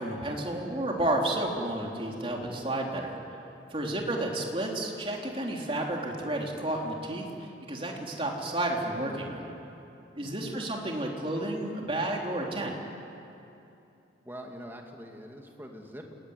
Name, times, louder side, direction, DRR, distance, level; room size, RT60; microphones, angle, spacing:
voice 1, 0.0-3.2 3.7-9.5 10.1-12.7, right 1 dB, 30° right, 0 dB, 3.6 m, -31 dB
voice 2, 3.8-4.4 10.2-10.8 14.2-16.1, equal, 10° right, 1 dB, 2.6 m, -45 dB
28.5 x 21.0 x 9.9 m, 2.8 s
head